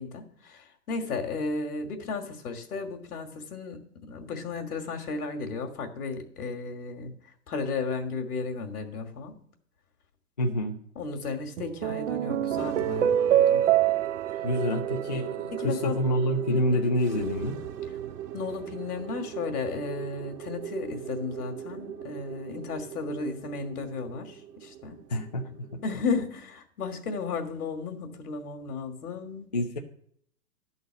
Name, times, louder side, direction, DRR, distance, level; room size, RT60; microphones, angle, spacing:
voice 1, 0.0-7.1 7.5-9.4 11.0-13.6 14.3-14.4 15.5-16.0 16.7-16.8 18.3-25.0 25.8-29.5, left 4 dB, 70° left, 4 dB, 1.8 m, -34 dB
voice 2, 10.4-10.8 14.4-17.6 25.1-25.8 29.5-29.8, left 1 dB, 30° left, 1 dB, 0.4 m, -27 dB
sound 1, 11.6-16.1, right 11 dB, 50° right, 0.5 m, -26 dB
sound 2, 12.6-26.1, right 10 dB, 90° right, 0.7 m, -39 dB
11.5 x 4.1 x 7.5 m, 0.65 s
hypercardioid pair, 165°, 47 cm